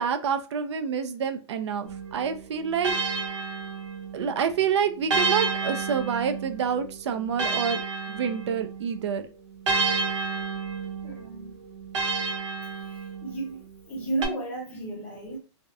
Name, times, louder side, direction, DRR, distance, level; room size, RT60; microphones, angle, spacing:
voice 1, 0.0-2.9 4.1-7.8 8.1-9.2, right 7 dB, 70° right, 0.5 m, -27 dB
sound 1, 1.8-4.3 5.1-8.9 9.7-13.4 14.2-14.3, right 4 dB, 90° right, 0.8 m, -30 dB
voice 2, 11.0-11.5 13.2-15.4, right 2 dB, 10° left, 0.4 m, -33 dB
2.7 x 2.1 x 2.3 m
hypercardioid pair, 170°, 15 cm